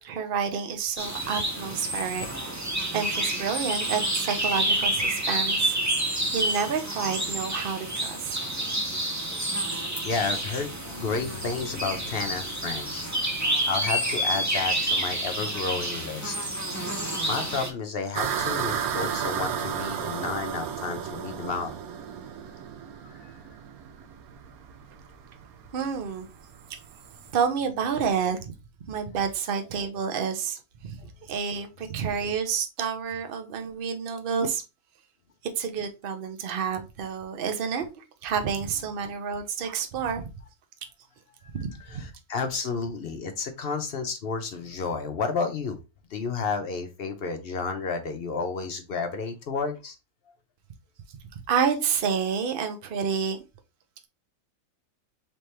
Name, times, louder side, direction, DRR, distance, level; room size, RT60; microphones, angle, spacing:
voice 1, 0.0-2.7 2.9-5.8 6.1-8.4 25.7-26.3 27.3-28.5 28.9-34.6 35.6-40.3 41.5-42.1 51.5-53.4, right 6 dB, 45° right, 0.8 m, -29 dB
sound 1, 1.0-17.7, right 1 dB, 15° right, 0.7 m, -29 dB
voice 2, 9.3-16.5 17.3-21.8 23.1-23.4 31.0-31.1 41.9-45.8 46.1-50.0, left 4 dB, 55° left, 0.7 m, -32 dB
sound 2, 18.1-27.3, right 8 dB, 85° right, 1.1 m, -33 dB
3.5 x 3.3 x 4.2 m
omnidirectional pair, 1.5 m